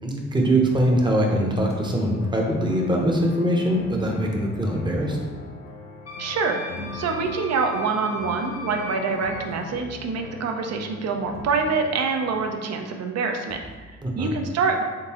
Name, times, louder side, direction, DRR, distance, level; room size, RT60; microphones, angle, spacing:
voice 1, 0.0-5.2 14.0-14.3, right 1 dB, 15° right, 0 dB, 0.7 m, -22 dB
sound 1, 0.7-12.7, left 3 dB, 90° left, 0.6 m, -41 dB
sound 2, 1.7-2.0 4.3-4.8 6.6-7.5 9.1-9.7 11.3-11.8 13.5-13.9, equal, 30° left, 0.9 m, -40 dB
Wind instrument woodwind instrument, 6.1-9.4, left 2 dB, 60° left, 0.9 m, -38 dB
voice 2, 6.2-14.8, right 4 dB, 60° right, 4 dB, 0.6 m, -26 dB
3.8 x 3.5 x 2.9 m, 1.4 s
cardioid pair, 90°, 30 cm